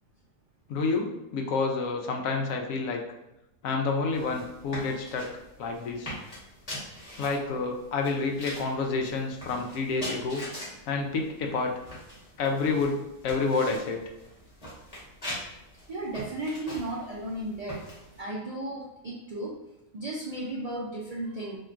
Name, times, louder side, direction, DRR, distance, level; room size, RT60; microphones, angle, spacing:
voice 1, 0.7-3.0 3.6-5.3 5.6-6.2 7.2-10.4 10.9-11.7 12.4-13.0 13.2-14.0, left 4 dB, 90° left, 2 dB, 1.0 m, -29 dB
sound 1, 4.1-18.2, equal, 30° left, 1.5 m, -43 dB
voice 2, 15.9-17.8 18.2-19.6 19.9-21.6, right 1 dB, 70° right, -4 dB, 0.3 m, -34 dB
4.4 x 2.9 x 2.5 m, 0.90 s
omnidirectional pair, 1.4 m